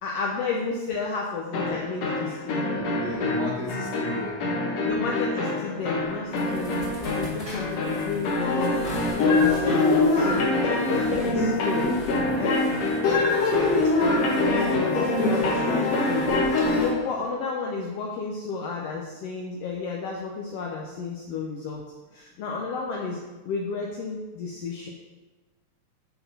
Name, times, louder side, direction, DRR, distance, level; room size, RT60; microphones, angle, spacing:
voice 1, 0.0-2.6 4.8-11.9 12.4-12.7 13.6-13.7 14.0-16.3 16.6-21.8 22.1-24.9, left 4 dB, 80° left, -1 dB, 1.4 m, -32 dB
sound 1, 1.5-17.0, left 2 dB, 65° left, 2.1 m, -24 dB
voice 2, 2.7-4.4 4.7-4.9 7.4-8.0 15.5-15.6, right 2 dB, 85° right, -5 dB, 0.9 m, -35 dB
sound 2, 6.0-16.9, equal, 35° left, 1.6 m, -43 dB
7.7 x 4.0 x 4.0 m, 1.2 s
omnidirectional pair, 3.4 m